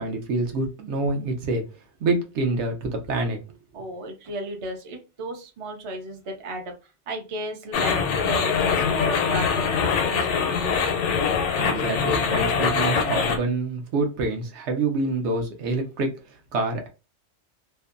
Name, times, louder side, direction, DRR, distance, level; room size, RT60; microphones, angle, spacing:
voice 1, 0.0-1.7 2.0-3.4 11.6-16.9, right 2 dB, 75° right, 0.9 m, -26 dB
voice 2, 3.7-10.8, right 1 dB, 45° right, 0.4 m, -35 dB
sound 1, 7.7-13.4, left 6 dB, 75° left, 0.9 m, -23 dB
2.6 x 2.1 x 2.4 m
omnidirectional pair, 1.2 m